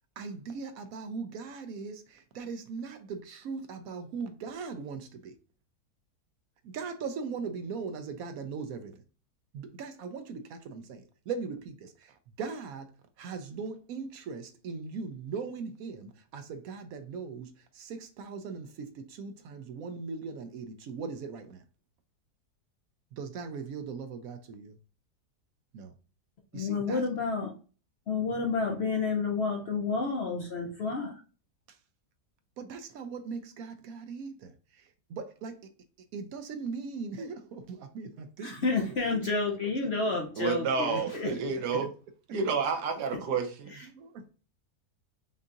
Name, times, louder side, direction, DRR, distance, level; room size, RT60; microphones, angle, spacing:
voice 1, 0.2-5.4 6.6-9.0 9.5-12.9 13.2-21.6 23.1-24.8 25.7-26.0 26.5-27.1 31.7-31.8 32.6-35.7 36.1-38.9 39.1-39.3 39.8-39.9 41.2-41.6 43.9-44.2, right 5 dB, 70° right, 0.9 m, -39 dB
voice 2, 26.5-27.5 28.1-31.2 38.4-41.3 43.7-43.9, left 4 dB, 60° left, 0.6 m, -30 dB
voice 3, 40.4-41.9 42.3-43.8, right 5 dB, 85° right, 1.4 m, -30 dB
5.2 x 2.7 x 2.4 m
omnidirectional pair, 1.7 m